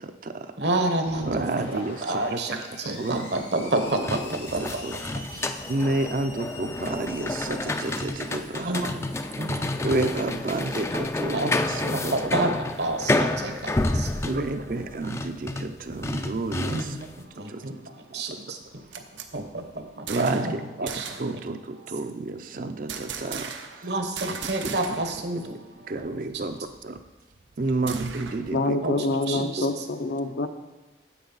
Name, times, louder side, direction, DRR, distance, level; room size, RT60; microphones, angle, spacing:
voice 1, 0.0-0.5 1.2-2.0 2.3-2.4 3.0-3.3 4.4-4.9 5.3-8.9 9.8-12.5 13.1-13.5 14.2-16.9 17.5-17.6 18.1-18.2 20.1-23.9 24.6-24.7 25.9-27.0 27.6-28.8 29.3-29.4, right 2 dB, 45° right, 8 dB, 0.5 m, -30 dB
voice 2, 0.6-5.7 8.6-9.7 11.3-11.5 11.9-12.5 12.8-14.4 16.7-21.4 21.8-21.9 23.8-25.9 26.3-26.5 28.8-29.7, right 2 dB, 70° right, 5 dB, 1.1 m, -30 dB
Screech, 1.1-11.5, left 2 dB, 85° left, 2.8 m, -44 dB
sound 1, 3.9-17.1, left 2 dB, 15° left, 0.3 m, -30 dB
sound 2, 18.6-20.6 20.9-21.4 22.9-23.9 24.2-25.2 25.5-25.6 25.9-28.5, right 7 dB, 90° right, 0.8 m, -38 dB
voice 3, 28.5-30.5, left 2 dB, 65° left, 8 dB, 0.6 m, -26 dB
9.7 x 7.7 x 4.0 m, 1.1 s
head